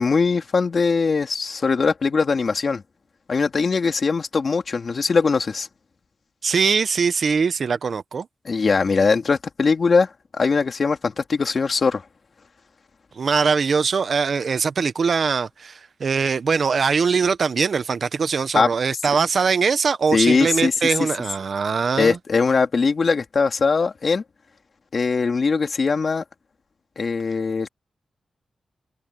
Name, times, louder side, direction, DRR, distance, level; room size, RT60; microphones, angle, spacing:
voice 1, 0.0-2.8 3.3-5.7 8.5-12.0 18.5-18.7 20.1-20.7 22.0-24.2 24.9-26.2 27.0-27.7, left 4 dB, 50° left, 2.6 m, -21 dB
voice 2, 6.4-8.3 13.2-22.2, right 5 dB, 55° right, 0.8 m, -22 dB
wide cardioid pair, 135°, 0 cm